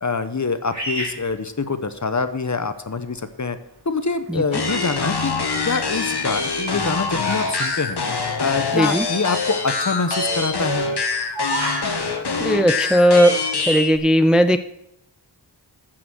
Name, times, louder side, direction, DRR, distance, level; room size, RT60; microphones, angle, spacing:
voice 1, 0.0-3.6 3.8-5.3 5.7-8.0 8.4-10.9, left 4 dB, 40° left, 10 dB, 1.0 m, -25 dB
Bird vocalization bird call bird song, 0.7-2.2 2.9-3.3 4.0-5.0 5.3-8.7 9.0-9.1 9.3-9.6 10.1-12.0, right 1 dB, 40° right, 3.9 m, -31 dB
sound 1, 4.5-14.0, left 4 dB, 60° left, 1.5 m, -25 dB
voice 2, 8.7-9.0 12.4-13.4 13.7-14.6, equal, ahead, 10 dB, 0.5 m, -16 dB
14.0 x 6.1 x 6.2 m, 0.83 s
wide cardioid pair, 50°, 44 cm